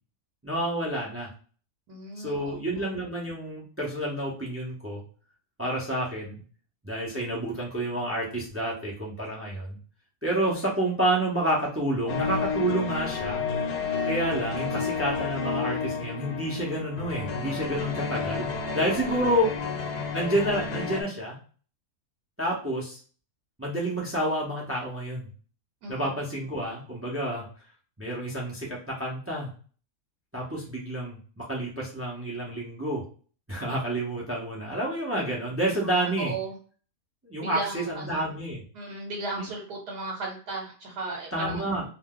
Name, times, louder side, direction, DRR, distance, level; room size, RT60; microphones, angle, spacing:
voice 1, 0.4-1.3 2.2-5.0 5.6-6.4 6.8-9.8 10.2-13.5 14.0-19.6 20.1-21.4 22.4-23.0 23.6-25.3 25.9-27.5 28.0-29.5 30.3-33.0 33.5-36.3 37.2-38.6 39.4-39.5 41.3-41.8, right 1 dB, 20° right, -4 dB, 0.3 m, -29 dB
voice 2, 1.9-2.6 25.8-26.0 36.2-36.6 37.4-38.2 38.7-41.6, right 3 dB, 85° right, 0 dB, 1.3 m, -35 dB
sound 1, 12.1-21.0, left 5 dB, 85° left, 1.2 m, -31 dB
2.6 x 2.2 x 3.6 m, 0.41 s
omnidirectional pair, 1.7 m